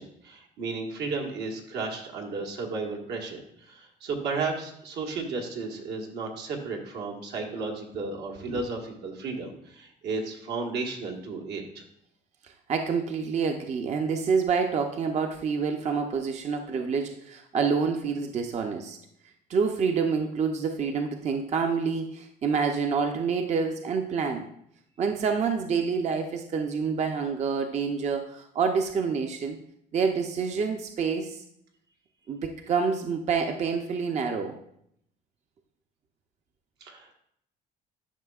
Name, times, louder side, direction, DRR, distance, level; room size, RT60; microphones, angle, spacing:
voice 1, 0.0-11.8 36.8-37.1, right 3 dB, 80° right, 0 dB, 1.5 m, -34 dB
voice 2, 12.7-19.0 19.5-24.5 25.0-29.6 29.9-31.4 32.3-34.5, right 5 dB, 40° right, 5 dB, 0.6 m, -27 dB
11.0 x 5.5 x 2.4 m, 0.73 s
cardioid pair, 110°, 17 cm